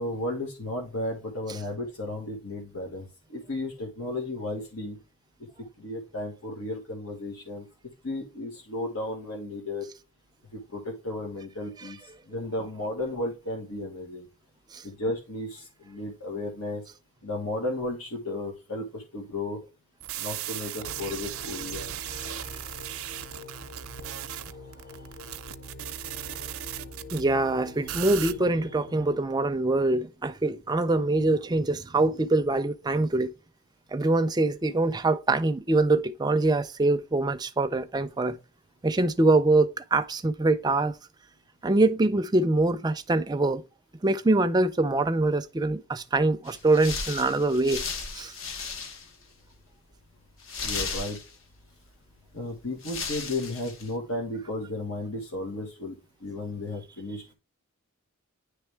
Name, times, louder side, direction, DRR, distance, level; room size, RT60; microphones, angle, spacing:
voice 1, 0.0-5.0 5.8-7.6 8.0-9.9 10.5-12.0 12.3-14.3 14.8-16.8 17.2-19.6 20.2-21.9 50.6-51.2 52.3-57.3, left 2 dB, 80° left, 1.6 m, -34 dB
sound 1, 20.0-27.2 27.9-28.3, right 11 dB, 75° right, 0.5 m, -37 dB
sound 2, 20.8-29.2, left 1 dB, 35° left, 1.0 m, -45 dB
voice 2, 27.1-33.3 33.9-38.4 38.8-40.9 41.6-43.6 44.0-47.8 48.1-48.3, right 2 dB, 20° right, 0.4 m, -24 dB
sound 3, 46.5-49.2 49.5-49.6 50.4-51.6 52.4-52.5 52.8-53.9, left 4 dB, 60° left, 0.9 m, -35 dB
9.9 x 3.4 x 3.3 m
head